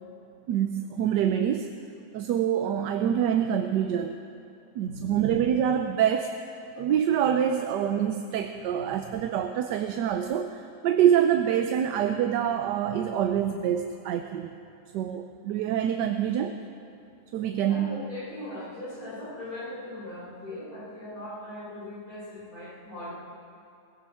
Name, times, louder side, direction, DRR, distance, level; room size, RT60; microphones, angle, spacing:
voice 1, 0.5-1.7 2.1-4.2 4.7-6.5 6.8-14.5 14.9-16.6 17.3-18.0, right 9 dB, 80° right, 6 dB, 1.3 m, -26 dB
voice 2, 4.8-5.3 8.7-8.9 17.6-23.1, left 1 dB, 55° left, -7 dB, 5.3 m, -39 dB
18.5 x 16.0 x 4.3 m, 2.5 s
omnidirectional pair, 1.8 m